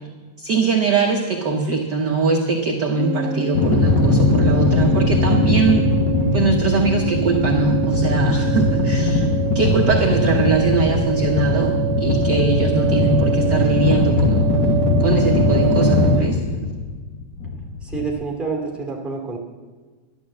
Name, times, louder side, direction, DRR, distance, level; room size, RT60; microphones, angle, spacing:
voice 1, 0.4-5.9 6.3-9.2 9.5-14.5 15.0-16.4, right 3 dB, 55° right, 1 dB, 1.2 m, -21 dB
sound 1, 3.0-16.2, right 7 dB, 75° right, 1.9 m, -26 dB
sound 2, 3.5-18.1, left 2 dB, 45° left, 1.8 m, -20 dB
voice 2, 17.8-19.4, right 4 dB, ahead, -1 dB, 2.2 m, -27 dB
12.0 x 11.5 x 7.4 m, 1.4 s
omnidirectional pair, 3.4 m